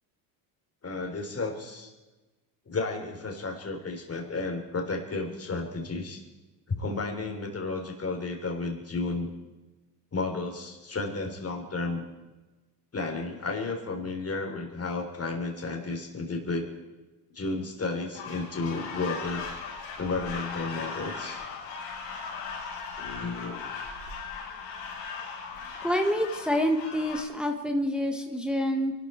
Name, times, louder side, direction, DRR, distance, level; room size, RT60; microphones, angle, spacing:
voice 1, 0.8-1.9 2.7-6.2 6.7-9.3 10.1-12.1 12.9-16.7 17.3-19.5 20.0-21.4 23.0-23.7, left 3 dB, 30° left, 2 dB, 3.7 m, -32 dB
sound 1, 18.1-27.2, left 5 dB, 85° left, 6.0 m, -38 dB
voice 2, 25.8-28.9, equal, ahead, 4 dB, 1.5 m, -27 dB
24.0 x 12.5 x 4.5 m, 1.1 s
supercardioid pair, 85°, 50 cm